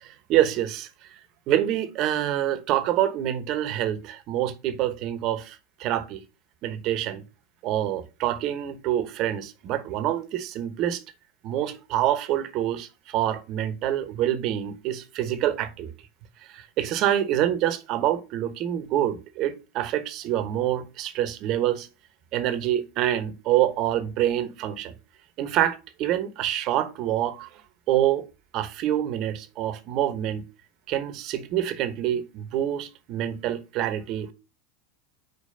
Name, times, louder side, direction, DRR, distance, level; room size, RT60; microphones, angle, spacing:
voice 1, 0.0-0.9 1.5-6.2 6.6-7.2 7.6-11.0 11.4-15.9 16.5-21.9 22.3-24.9 25.4-27.5 27.9-28.2 28.5-30.4 30.9-34.3, right 12 dB, 50° right, 1.0 m, -26 dB
5.1 x 4.6 x 5.6 m
hypercardioid pair, 90°, 0 cm